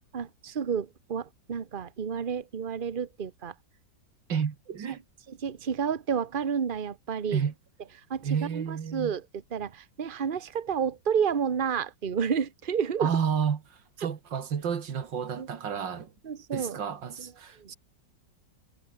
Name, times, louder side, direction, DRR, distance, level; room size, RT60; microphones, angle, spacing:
voice 1, 0.1-3.5 5.3-7.4 8.1-9.3 9.5-13.1 15.4-15.5 16.2-16.8 17.2-17.3 17.6-17.7, right 7 dB, 30° right, 1.2 m, -30 dB
voice 2, 4.3-5.0 7.3-7.5 8.2-9.1 13.0-13.6 14.0-16.1 16.5-17.7, right 7 dB, 80° right, 2.5 m, -30 dB
omnidirectional pair, 2.0 m